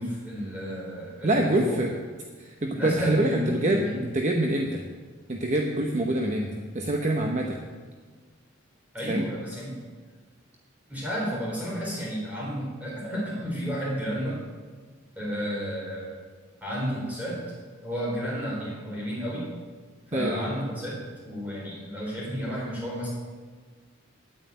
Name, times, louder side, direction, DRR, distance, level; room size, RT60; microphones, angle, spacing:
voice 1, 0.0-1.8 2.7-4.0 8.9-9.8 10.9-14.4 15.2-16.1 16.6-17.5 17.8-19.5 20.1-23.1, equal, 5° right, -5 dB, 4.0 m, -32 dB
voice 2, 1.2-1.9 2.4-3.8 4.1-4.8 5.3-7.6 9.0-9.3 20.1-20.5, right 1 dB, 35° right, 2 dB, 0.9 m, -25 dB
9.2 x 9.1 x 9.2 m, 1.5 s
head